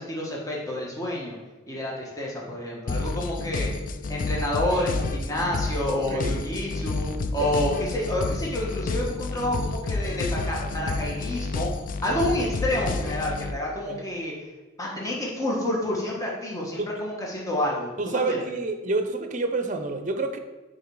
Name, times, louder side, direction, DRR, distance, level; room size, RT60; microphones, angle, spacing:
voice 1, 0.0-1.4 1.7-3.7 4.1-11.7 12.0-14.3 14.8-18.4, left 1 dB, 15° left, -3 dB, 1.3 m, -29 dB
sound 1, 2.9-13.5, left 3 dB, 45° left, 0.4 m, -30 dB
voice 2, 18.0-20.4, right 3 dB, 40° right, 7 dB, 0.7 m, -28 dB
8.9 x 4.1 x 4.7 m, 1.2 s
head